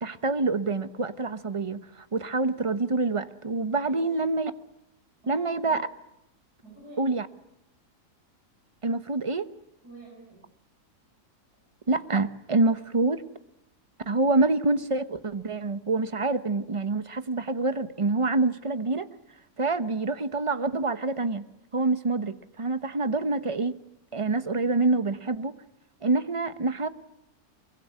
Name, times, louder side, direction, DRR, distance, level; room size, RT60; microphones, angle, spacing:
voice 1, 0.0-1.8 2.1-4.5 5.3-5.9 7.0-7.3 8.8-9.5 11.9-13.2 14.1-19.1 19.6-21.4 21.7-23.7 24.1-25.5 26.0-26.9, right 3 dB, 25° right, 13 dB, 0.8 m, -26 dB
voice 2, 3.8-4.3 5.2-5.8 6.6-7.1 9.8-10.5, right 2 dB, 80° right, -3 dB, 8.0 m, -48 dB
24.0 x 22.5 x 9.7 m, 0.87 s
omnidirectional pair, 1.7 m